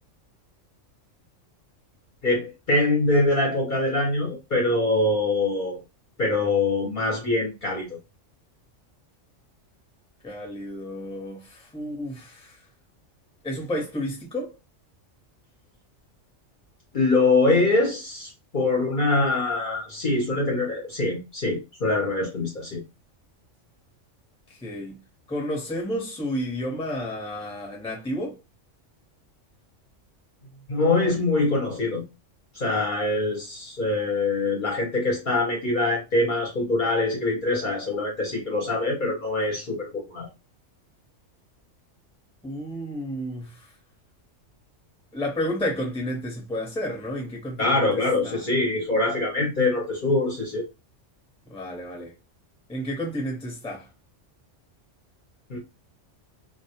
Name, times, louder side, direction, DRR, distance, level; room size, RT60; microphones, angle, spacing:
voice 1, 2.2-5.8 6.2-8.0 16.9-22.8 30.7-32.0 32.5-40.3 47.6-50.6 55.5-55.6, left 2 dB, 50° left, 0.7 m, -24 dB
voice 2, 10.2-12.6 13.4-14.6 24.6-25.0 25.3-28.4 42.4-43.7 45.1-48.5 51.5-52.1 52.7-53.9, equal, 5° left, 0.6 m, -31 dB
2.2 x 2.1 x 2.8 m
omnidirectional pair, 1.3 m